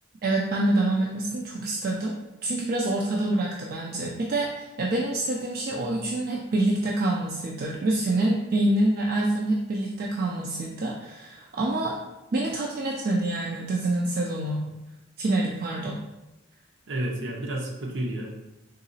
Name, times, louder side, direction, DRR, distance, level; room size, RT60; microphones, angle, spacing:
voice 1, 0.2-2.1 2.4-12.0 12.3-14.7 15.2-16.0, right 2 dB, 50° right, -2 dB, 0.3 m, -26 dB
voice 2, 16.9-18.3, right 1 dB, 70° right, -1 dB, 0.7 m, -30 dB
3.8 x 2.8 x 2.7 m, 1.0 s
head